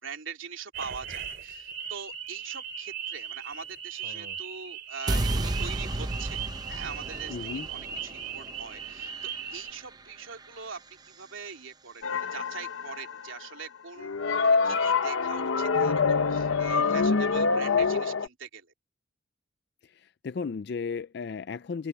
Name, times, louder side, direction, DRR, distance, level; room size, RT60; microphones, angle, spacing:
voice 1, 0.0-6.4 6.7-7.4 7.7-14.1 14.4-18.7, right 5 dB, 75° right, 3.0 m, -42 dB
sound 1, 0.7-9.7, right 8 dB, 55° right, 2.9 m, -38 dB
sound 2, 5.1-11.2, right 1 dB, 20° right, 0.6 m, -34 dB
voice 2, 7.3-7.7 19.8-21.9, left 5 dB, 55° left, 0.4 m, -35 dB
sound 3, 12.0-13.4 14.0-18.3, left 5 dB, 85° left, 0.9 m, -25 dB
head